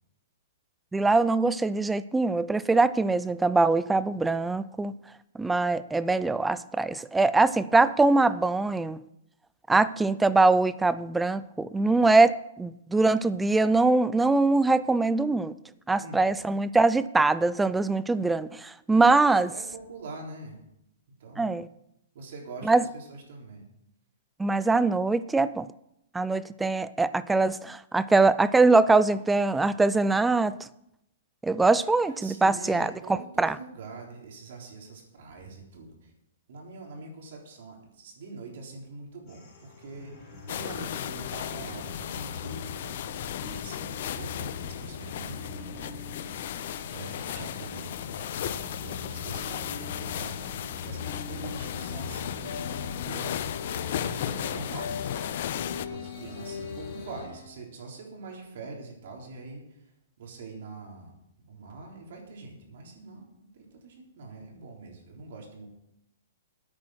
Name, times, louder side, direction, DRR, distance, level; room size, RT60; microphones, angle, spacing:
voice 1, 0.9-4.9 5.3-9.0 9.7-15.5 15.9-19.5 21.4-21.7 22.7-22.8 24.4-25.7 26.1-30.6 31.4-32.9 33.4-33.5, right 3 dB, 5° right, 16 dB, 0.3 m, -23 dB
voice 2, 19.3-20.6 21.2-21.6 22.1-23.7 32.1-36.1 36.5-43.0 43.4-46.4 46.9-47.9 48.3-50.5 50.7-55.3 55.7-59.9 60.2-61.1 61.4-63.3 63.5-65.7, right 3 dB, 55° right, 0 dB, 3.6 m, -44 dB
sound 1, 39.3-57.3, left 5 dB, 30° left, 4.1 m, -43 dB
sound 2, 40.5-55.9, left 10 dB, 50° left, 0.6 m, -35 dB
sound 3, 49.7-57.5, left 5 dB, 90° left, 2.4 m, -42 dB
10.5 x 8.8 x 6.2 m, 0.81 s
hypercardioid pair, 165°, 0 cm